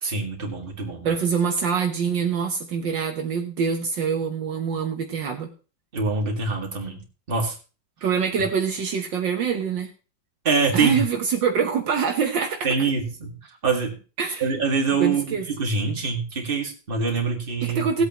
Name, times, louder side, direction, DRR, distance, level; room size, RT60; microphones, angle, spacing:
voice 1, 0.0-1.1 5.9-7.6 10.4-11.0 12.6-13.3 13.6-13.9 14.4-17.9, right 4 dB, 25° right, 1 dB, 2.1 m, -25 dB
voice 2, 1.0-5.5 8.0-9.9 10.7-12.8 14.2-14.5 15.0-15.4 17.6-18.0, right 6 dB, 70° right, 3 dB, 1.7 m, -25 dB
18.0 x 8.2 x 3.0 m, 0.34 s
omnidirectional pair, 2.2 m